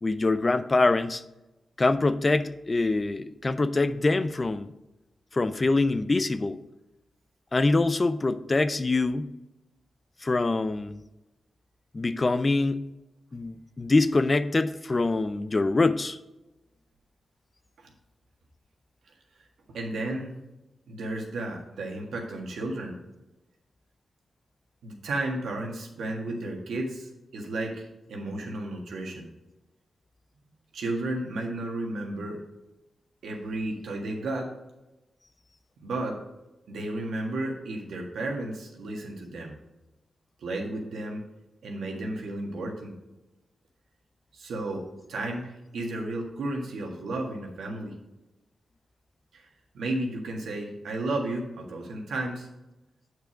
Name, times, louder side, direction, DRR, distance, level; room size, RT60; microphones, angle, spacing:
voice 1, 0.0-1.2 1.8-4.7 5.3-6.6 7.5-9.3 10.2-11.0 11.9-12.8 13.3-16.2, left 3 dB, 35° left, 12 dB, 0.5 m, -24 dB
voice 2, 19.7-20.4 20.9-23.0 24.8-29.3 30.7-32.4 33.2-34.5 35.8-36.2 36.7-39.6 40.4-41.2 41.6-42.9 44.3-47.9 49.3-49.5 49.7-52.5, right 2 dB, 85° right, 1 dB, 1.6 m, -33 dB
8.0 x 4.8 x 4.9 m, 0.97 s
cardioid pair, 65°, 0 cm